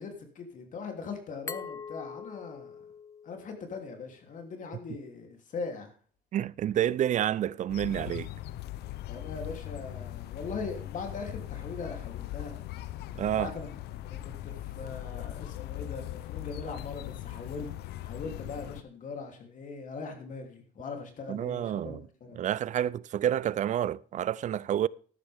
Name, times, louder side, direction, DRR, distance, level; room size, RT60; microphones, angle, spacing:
voice 1, 0.0-2.7 3.2-5.9 9.1-12.6 13.4-13.7 14.0-17.7 18.0-22.4, left 4 dB, 50° left, 3.1 m, -40 dB
Glass, 1.5-4.3, left 5 dB, 15° left, 0.5 m, -44 dB
voice 2, 6.3-8.3 13.1-13.5 21.3-22.0 22.3-24.9, right 11 dB, 45° right, 0.4 m, -29 dB
sound 1, 7.7-18.8, left 14 dB, 75° left, 0.6 m, -40 dB
13.0 x 11.5 x 3.5 m
cardioid pair, 110°, 17 cm